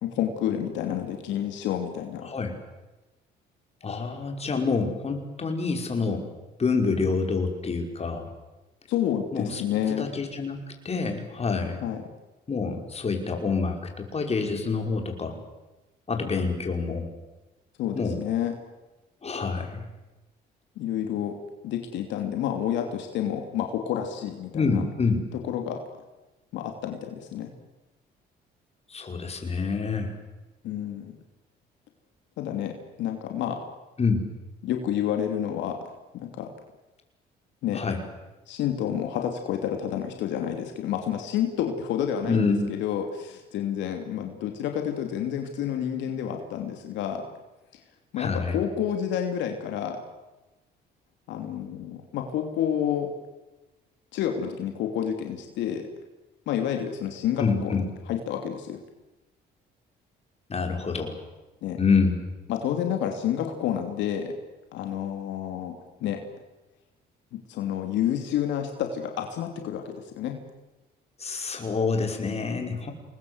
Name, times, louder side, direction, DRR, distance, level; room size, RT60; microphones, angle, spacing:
voice 1, 0.0-2.3 8.9-10.1 11.8-12.0 17.8-18.5 20.8-21.4 21.6-24.8 25.5-25.8 26.5-27.5 30.6-31.1 32.4-33.6 34.6-35.8 36.1-36.5 37.6-37.8 38.5-47.2 48.1-50.0 51.3-53.1 54.1-55.9 56.5-57.8 58.1-58.8 61.6-61.8 62.5-64.3 64.7-65.7 66.0-66.2 67.5-70.4, left 9 dB, 80° left, 4 dB, 3.0 m, -29 dB
voice 2, 3.8-6.3 6.6-8.3 9.3-9.6 9.9-11.8 12.5-15.4 16.1-17.1 17.9-18.2 19.2-19.8 24.5-25.2 28.9-30.1 34.0-34.3 37.7-38.0 42.2-42.7 48.2-48.6 57.4-57.8 60.5-61.2 61.8-62.2 71.2-72.9, left 4 dB, 35° left, 4 dB, 5.5 m, -27 dB
27.5 x 21.0 x 8.1 m, 1.1 s
cardioid pair, 85°, 18 cm